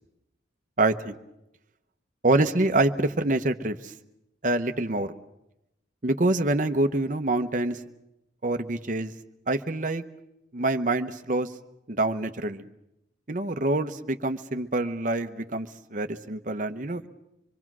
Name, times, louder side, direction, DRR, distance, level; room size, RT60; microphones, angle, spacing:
voice 1, 0.8-1.1 2.2-3.9 4.4-5.1 6.0-7.8 8.4-9.1 9.5-10.0 10.5-11.5 11.9-12.7 13.3-17.1, right 2 dB, 45° right, 8 dB, 0.9 m, -26 dB
25.5 x 23.0 x 6.1 m, 0.88 s
head